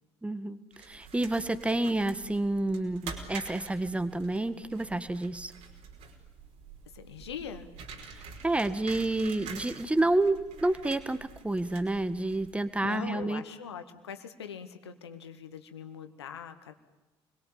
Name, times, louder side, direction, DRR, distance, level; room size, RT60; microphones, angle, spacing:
voice 1, 0.2-5.5 8.1-13.4, right 2 dB, 10° right, 13 dB, 1.7 m, -29 dB
sound 1, 0.7-12.8, right 5 dB, 55° right, 5.1 m, -47 dB
voice 2, 6.9-7.7 12.8-16.7, left 7 dB, 75° left, 8 dB, 1.9 m, -42 dB
29.0 x 22.0 x 8.8 m, 1.1 s
figure-of-eight pair, 55°, 14 cm